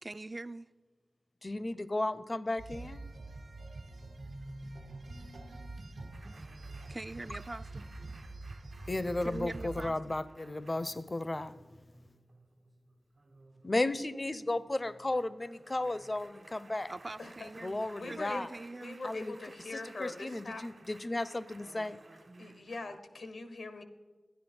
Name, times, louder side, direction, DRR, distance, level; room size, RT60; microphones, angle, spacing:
voice 1, 0.0-0.7 6.9-7.9 9.2-10.2 16.9-17.8 18.1-19.0 21.8-22.0, right 2 dB, 40° right, 0.3 m, -43 dB
voice 2, 1.4-3.0 8.9-11.6 13.6-16.9 17.6-18.5 19.0-19.3 20.0-22.0, left 2 dB, 40° left, 0.5 m, -34 dB
sound 1, 2.6-9.9, right 2 dB, 85° right, 1.2 m, -45 dB
sound 2, 6.1-23.0, right 2 dB, 70° right, 1.4 m, -57 dB
voice 3, 17.2-20.7 22.4-23.8, left 3 dB, 85° left, 1.0 m, -43 dB
11.5 x 10.5 x 4.3 m
cardioid pair, 40°, 0 cm